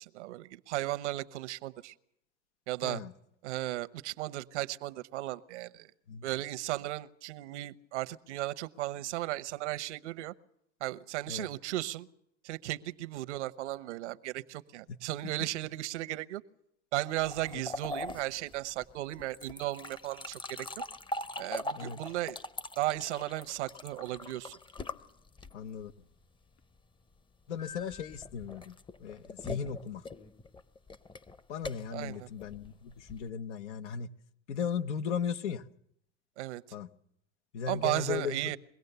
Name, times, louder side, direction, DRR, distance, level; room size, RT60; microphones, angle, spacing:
voice 1, 0.0-1.9 2.7-3.0 3.4-5.9 6.2-10.3 10.8-12.1 12.4-16.4 16.9-20.4 21.4-22.4 22.8-24.6 31.9-32.3 36.4-36.6 37.7-38.6, right 16 dB, 80° right, 13 dB, 1.0 m, -35 dB
voice 2, 2.8-3.1 6.1-6.2 11.3-11.5 14.9-15.0 15.2-15.3 17.5-17.6 21.7-22.0 25.5-25.9 27.5-30.1 31.5-34.1 34.5-35.7 36.7-36.9 37.5-38.5, left 7 dB, 85° left, 10 dB, 1.2 m, -37 dB
sound 1, 17.2-25.8 27.6-33.3, left 2 dB, 15° left, 0.7 m, -42 dB
23.0 x 17.0 x 6.8 m, 0.77 s
hypercardioid pair, 100°, 34 cm